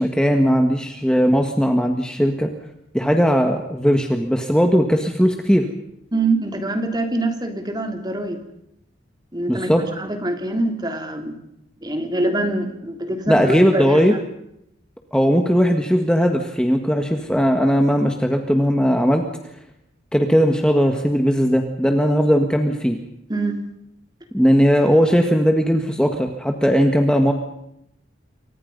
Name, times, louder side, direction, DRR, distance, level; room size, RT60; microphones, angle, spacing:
voice 1, 0.0-2.5 2.9-5.7 9.5-9.8 13.3-14.1 15.1-19.2 20.1-23.0 24.3-27.3, equal, 5° left, 4 dB, 1.8 m, -18 dB
voice 2, 6.1-8.4 9.3-11.4 11.8-14.0 23.3-23.6, right 2 dB, 20° right, 5 dB, 3.1 m, -24 dB
28.5 x 25.0 x 5.5 m, 0.79 s
head